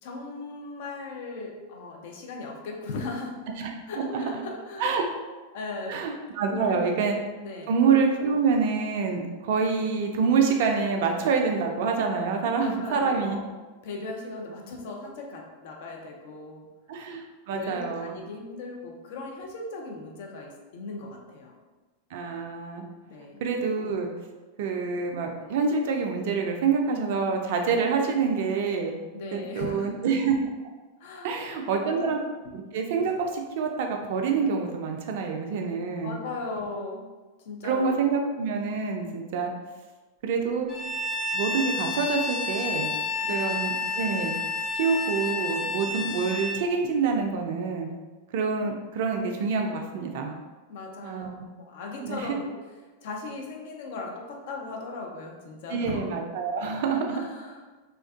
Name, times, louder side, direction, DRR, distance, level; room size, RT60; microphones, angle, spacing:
voice 1, 0.0-3.4 3.9-5.1 5.5-6.0 6.5-6.9 7.4-7.7 12.6-13.4 13.8-16.7 17.5-21.5 23.1-23.4 29.1-29.9 31.0-32.2 36.0-37.0 37.4-38.1 43.2-43.6 50.7-51.3 51.6-52.5 53.0-56.0 57.1-57.8, left 3 dB, 50° left, 0 dB, 0.4 m, -38 dB
voice 2, 5.9-7.2 7.7-13.4 16.9-18.1 22.1-22.9 23.4-24.1 24.6-28.9 29.3-30.4 31.2-32.2 32.5-36.2 37.6-39.5 40.2-40.7 41.3-42.9 43.3-44.3 44.8-47.9 48.3-50.4 51.0-51.5 52.0-52.4 55.7-57.2, right 5 dB, 50° right, 3 dB, 0.3 m, -26 dB
Bowed string instrument, 40.7-46.6, left 3 dB, 15° left, 0.7 m, -30 dB
2.3 x 2.2 x 2.4 m, 1.3 s
figure-of-eight pair, 90°, 0 cm